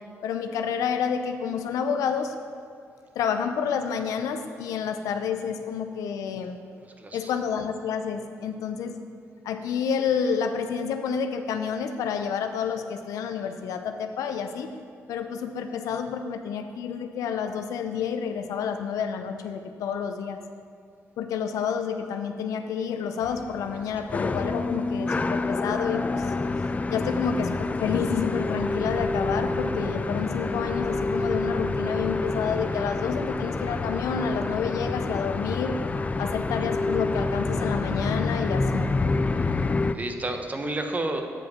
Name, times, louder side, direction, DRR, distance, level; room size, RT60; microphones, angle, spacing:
voice 1, 0.2-2.3 3.2-6.6 7.1-9.0 9.4-14.7 15.1-20.4 21.2-26.3 26.9-35.8 36.2-38.9, left 7 dB, 85° left, 7 dB, 0.5 m, -29 dB
voice 2, 6.8-7.3 39.9-41.2, right 2 dB, 30° right, 5 dB, 0.9 m, -30 dB
sound 1, 23.2-40.0, left 3 dB, 25° left, 0.3 m, -28 dB
7.6 x 5.1 x 5.8 m, 2.4 s
cardioid pair, 70°, 6 cm